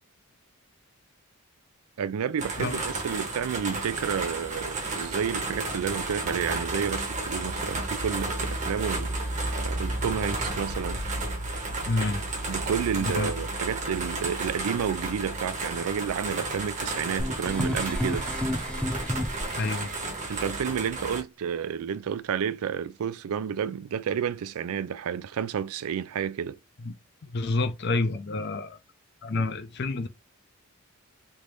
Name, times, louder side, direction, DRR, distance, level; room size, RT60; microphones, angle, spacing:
voice 1, 2.0-9.2 9.6-11.0 12.5-18.3 20.2-26.6, right 7 dB, 80° right, 0.4 m, -30 dB
sound 1, 2.4-21.2, right 2 dB, 35° right, 1.0 m, -32 dB
voice 2, 11.9-12.2 13.1-13.3 19.6-19.9 26.8-26.9 27.3-28.8 29.2-30.1, left 3 dB, 50° left, 0.5 m, -28 dB
sound 2, 17.2-19.9, left 1 dB, 5° left, 0.6 m, -30 dB
3.4 x 2.6 x 3.1 m
head